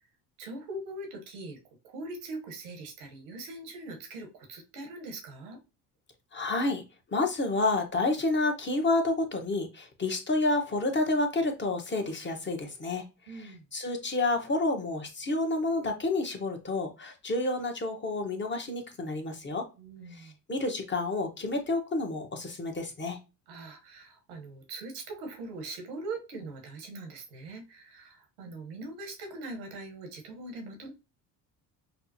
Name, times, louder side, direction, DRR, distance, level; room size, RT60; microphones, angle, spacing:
voice 1, 0.4-1.6 1.8-5.6 13.3-13.6 19.8-20.3 23.5-30.9, right 2 dB, 80° right, 3 dB, 1.2 m, -41 dB
voice 2, 6.3-6.8 7.1-13.0 13.4-19.7 20.2-23.2, left 2 dB, 25° left, 4 dB, 1.1 m, -29 dB
5.6 x 2.1 x 2.7 m, 0.29 s
hypercardioid pair, 65°, 45 cm